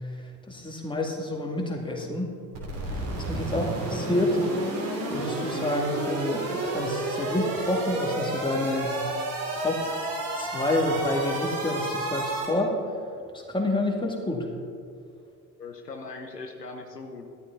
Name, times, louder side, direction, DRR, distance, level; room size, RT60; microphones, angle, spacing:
voice 1, 0.5-2.3 2.9-4.4 5.1-9.0 9.6-10.0 10.3-12.8 13.3-14.5, left 1 dB, 10° left, 0 dB, 2.3 m, -28 dB
sound 1, 2.5-12.5, right 2 dB, 60° right, 3.1 m, -31 dB
voice 2, 15.6-17.3, left 3 dB, 90° left, 3 dB, 0.9 m, -40 dB
14.5 x 12.5 x 4.1 m, 2.4 s
figure-of-eight pair, 55°, 47 cm